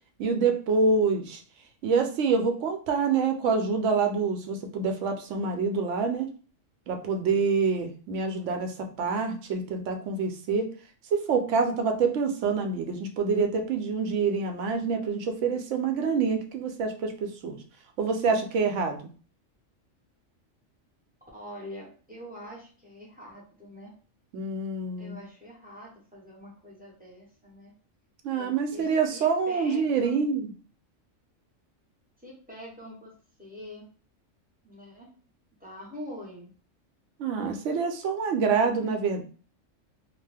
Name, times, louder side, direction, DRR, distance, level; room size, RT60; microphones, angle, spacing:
voice 1, 0.2-1.4 1.8-6.3 6.9-10.7 11.1-17.6 18.0-19.0 24.3-25.2 28.2-30.5 37.2-39.2, right 5 dB, 70° right, 5 dB, 0.9 m, -26 dB
voice 2, 21.3-23.9 25.0-27.7 28.4-30.3 32.2-33.9 34.6-35.1 35.6-36.5, equal, 10° right, -4 dB, 0.7 m, -44 dB
2.5 x 2.2 x 3.3 m, 0.39 s
omnidirectional pair, 1.3 m